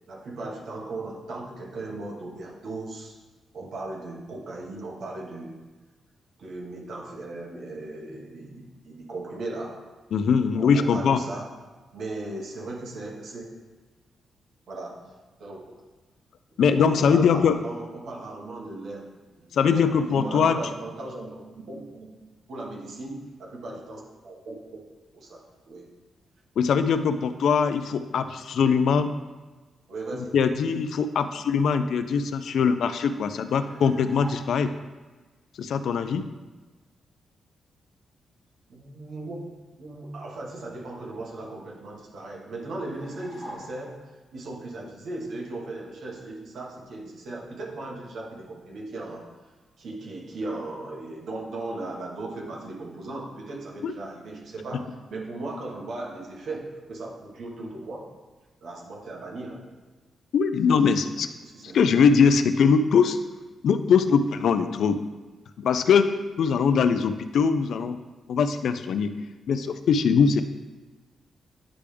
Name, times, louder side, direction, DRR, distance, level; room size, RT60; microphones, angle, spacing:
voice 1, 0.1-3.1 3.5-5.6 6.4-9.8 10.5-11.5 11.9-13.5 14.7-15.0 15.4-15.7 16.8-19.1 19.4-22.1 22.5-24.8 25.1-25.4 25.7-25.9 29.9-30.4 38.7-39.4 39.8-44.0 44.3-49.2 49.8-58.1 58.6-59.7 61.4-62.1, right 2 dB, 65° right, -2 dB, 1.5 m, -37 dB
voice 2, 10.1-11.2 16.6-17.6 19.5-20.6 26.6-29.1 30.3-34.7 35.6-36.3 53.8-53.9 60.3-61.3 61.7-63.2 63.6-65.0 65.6-66.1 66.4-68.0 68.3-69.1 69.5-70.4, left 6 dB, 70° left, 10 dB, 0.3 m, -21 dB
sound 1, 33.6-34.8 42.9-44.2, equal, 15° left, 1.6 m, -43 dB
9.8 x 3.4 x 3.4 m, 1.3 s
wide cardioid pair, 150°, 0 cm